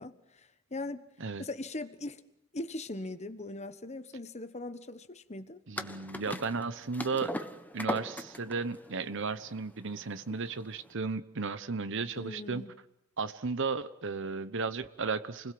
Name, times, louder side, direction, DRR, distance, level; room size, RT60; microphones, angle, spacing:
voice 1, 0.0-1.1 1.4-2.2 2.5-5.6 12.2-12.7, left 2 dB, 30° left, 1.3 m, -40 dB
voice 2, 5.7-7.4 7.7-12.6 13.2-15.5, right 4 dB, 60° right, 1.0 m, -34 dB
sound 1, 5.8-10.9, left 1 dB, 10° left, 1.1 m, -40 dB
29.0 x 21.0 x 7.8 m
head